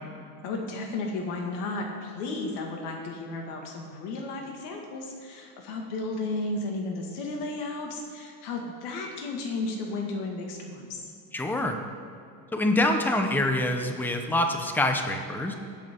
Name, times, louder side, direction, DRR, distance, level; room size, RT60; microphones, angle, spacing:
voice 1, 0.4-11.1, left 2 dB, 80° left, 1 dB, 2.1 m, -33 dB
voice 2, 11.3-11.8 12.5-15.5, left 1 dB, 5° left, 4 dB, 0.7 m, -25 dB
19.5 x 7.7 x 3.7 m, 2.5 s
cardioid pair, 155°, 45 cm